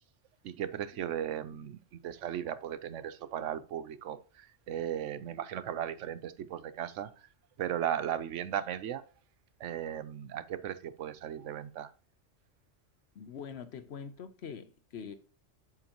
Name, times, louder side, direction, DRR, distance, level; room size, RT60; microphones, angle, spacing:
voice 1, 0.4-7.3 7.6-9.0 9.6-11.9, right 10 dB, 75° right, 0.9 m, -36 dB
voice 2, 13.1-15.1, left 7 dB, 60° left, 0.9 m, -44 dB
7.9 x 7.8 x 3.0 m
omnidirectional pair, 1.3 m